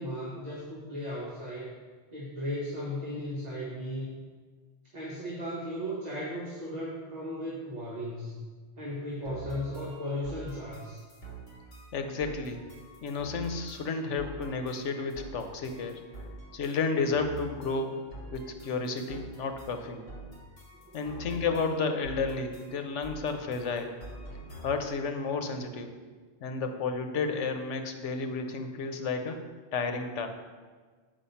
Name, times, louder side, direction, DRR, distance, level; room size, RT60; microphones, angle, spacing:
voice 1, 0.0-1.7 2.1-4.1 4.9-8.4 8.8-11.0 20.8-21.3, equal, 35° right, -6 dB, 1.4 m, -36 dB
sound 1, 9.3-25.0, right 1 dB, 60° left, 2.1 m, -46 dB
voice 2, 11.9-12.6 13.0-16.0 16.5-18.0 18.3-20.1 20.9-24.0 24.6-25.9 26.4-29.5 29.7-30.3, left 4 dB, 90° left, 6 dB, 1.1 m, -32 dB
7.2 x 5.2 x 5.6 m, 1.5 s
omnidirectional pair, 1.2 m